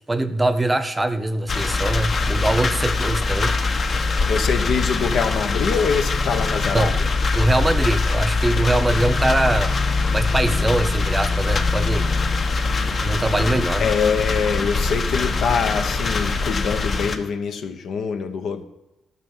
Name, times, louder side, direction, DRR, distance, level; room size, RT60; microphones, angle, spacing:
voice 1, 0.1-3.6 6.7-6.9 7.3-9.8 10.1-12.1 13.0-13.8, right 2 dB, 15° right, 0.9 m, -22 dB
sound 1, 1.5-17.2, left 3 dB, 45° left, 1.2 m, -22 dB
voice 2, 4.2-7.0 13.8-18.6, left 6 dB, 70° left, 1.1 m, -24 dB
12.5 x 6.0 x 7.2 m
cardioid pair, 90°, 0 cm